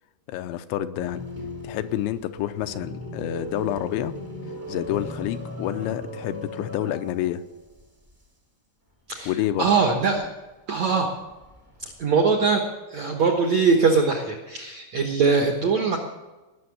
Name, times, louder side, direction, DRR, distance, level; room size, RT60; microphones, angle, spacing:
voice 1, 0.3-1.2 1.6-4.1 4.7-7.4 9.3-9.7, left 12 dB, 90° left, 10 dB, 3.0 m, -28 dB
sound 1, 1.0-7.5 7.8-7.9 9.6-10.2 11.3-12.0, left 1 dB, 35° right, 0.3 m, -37 dB
voice 2, 9.6-10.3 10.7-11.1 12.0-12.6 12.9-16.0, right 5 dB, 75° right, 2 dB, 1.6 m, -21 dB
18.0 x 6.9 x 9.5 m, 1.1 s
omnidirectional pair, 5.1 m